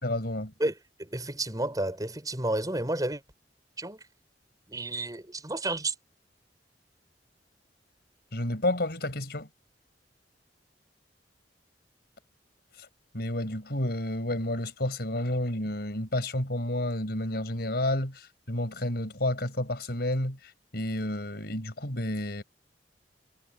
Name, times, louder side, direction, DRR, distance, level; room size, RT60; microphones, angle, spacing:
voice 1, 0.0-0.5 8.3-9.5 13.1-20.4 20.7-22.4, left 1 dB, 60° left, 4.9 m, -30 dB
voice 2, 1.0-3.2 3.8-4.0 4.7-5.9, right 2 dB, 20° right, 5.6 m, -31 dB
head